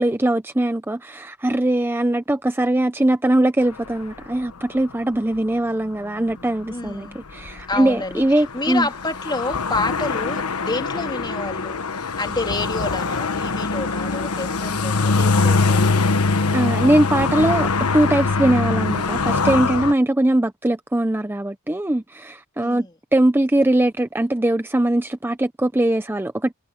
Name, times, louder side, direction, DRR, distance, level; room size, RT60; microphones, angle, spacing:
voice 1, 0.0-8.9 16.5-22.9 23.1-26.5, right 1 dB, 10° right, 0.5 m, -21 dB
voice 2, 6.7-7.2 7.7-16.2 22.6-22.9, left 2 dB, 20° left, 3.2 m, -29 dB
sound 1, 6.9-7.0 7.4-19.9, left 4 dB, 90° left, 1.3 m, -22 dB
head